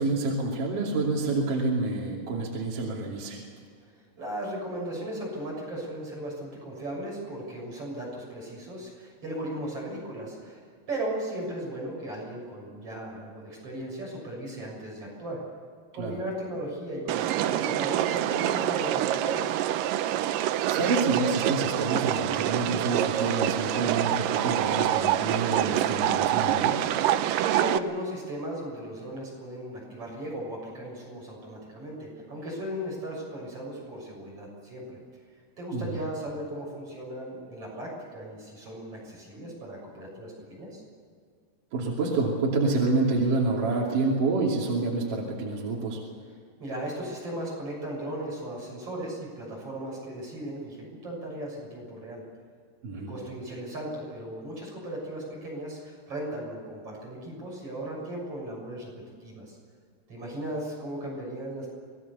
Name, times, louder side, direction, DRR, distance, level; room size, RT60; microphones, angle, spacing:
voice 1, 0.0-3.4 16.0-16.2 20.6-26.8 35.7-36.0 41.7-46.0 52.8-53.1, right 3 dB, 55° right, -3 dB, 4.2 m, -28 dB
voice 2, 4.2-10.6 10.9-15.4 15.9-19.6 27.4-35.0 35.6-40.8 46.6-52.2 52.9-58.9 59.2-59.6 60.1-61.7, right 1 dB, 35° right, -3 dB, 7.5 m, -36 dB
sound 1, 17.1-27.8, right 12 dB, 80° right, 1.9 m, -26 dB
26.5 x 20.0 x 6.9 m, 2.1 s
omnidirectional pair, 4.8 m